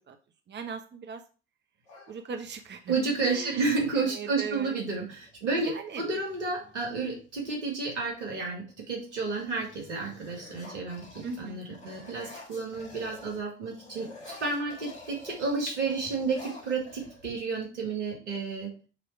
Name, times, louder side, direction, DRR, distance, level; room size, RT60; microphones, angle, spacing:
voice 1, 0.5-1.2 2.1-4.8 5.6-6.0 11.2-11.6, right 5 dB, 30° right, 6 dB, 1.0 m, -39 dB
sound 1, 1.9-2.8 4.5-4.6 4.9-5.4 6.0-7.5 8.1-8.5 8.9-13.4 13.7-17.6, left 2 dB, 80° left, 2.5 m, -49 dB
voice 2, 2.9-14.1 14.4-18.7, right 4 dB, 90° right, -1 dB, 1.9 m, -31 dB
7.5 x 3.4 x 4.7 m, 0.36 s
hypercardioid pair, 55°, 35 cm